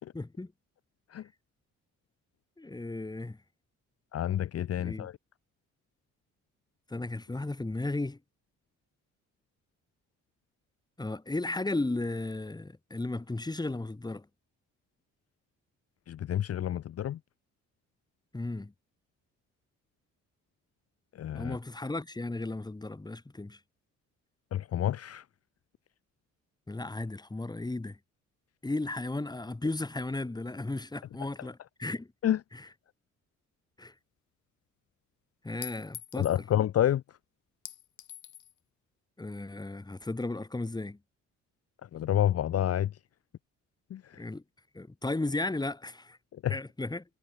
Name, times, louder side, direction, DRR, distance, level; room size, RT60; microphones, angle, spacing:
voice 1, 0.1-0.5 2.6-3.4 4.8-5.1 6.9-8.2 11.0-14.3 18.3-18.7 21.3-23.6 26.7-28.0 28.6-32.1 32.5-32.7 33.8-33.9 35.4-36.3 39.2-41.0 44.2-44.4 44.7-46.2 46.5-47.0, left 2 dB, 15° left, 2.6 m, -35 dB
voice 2, 4.1-5.2 16.1-17.2 21.1-21.6 24.5-25.2 32.2-32.4 36.2-37.0 41.9-42.9 43.9-44.2 46.3-46.5, left 11 dB, 55° left, 0.8 m, -29 dB
Chink clink, 33.9-34.0 35.6-36.4 37.6-38.5, left 12 dB, 70° left, 2.2 m, -45 dB
cardioid pair, 90°, 30 cm